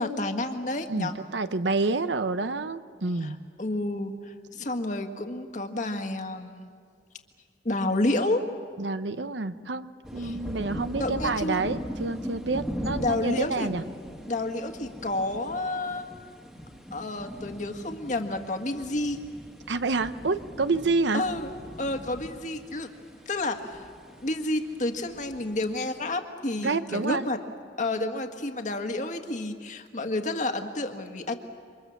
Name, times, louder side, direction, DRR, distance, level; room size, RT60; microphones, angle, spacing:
voice 1, 0.0-1.1 3.2-3.3 3.6-6.8 7.7-8.4 10.2-10.4 11.0-11.6 13.0-13.7 14.3-16.1 16.9-19.2 21.1-21.5 21.8-22.9 23.3-27.4 27.8-31.3, left 2 dB, 45° left, 6 dB, 1.8 m, -30 dB
voice 2, 0.9-3.4 8.8-13.8 19.7-21.2 26.6-27.3, right 3 dB, 80° right, 11 dB, 0.8 m, -28 dB
sound 1, 10.0-26.1, equal, 5° right, 1.8 m, -40 dB
28.5 x 25.5 x 7.3 m, 2.2 s
head